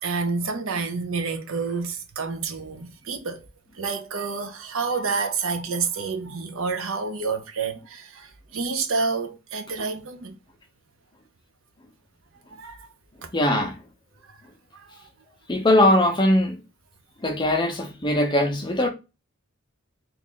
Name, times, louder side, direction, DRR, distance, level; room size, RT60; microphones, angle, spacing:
voice 1, 0.0-3.5 3.8-10.4 12.6-12.9 13.2-13.3 14.7-15.0, right 4 dB, 70° right, 0.6 m, -29 dB
voice 2, 13.3-13.8 15.5-16.6 17.2-18.9, left 1 dB, 20° left, 0.6 m, -20 dB
3.0 x 2.5 x 3.7 m
head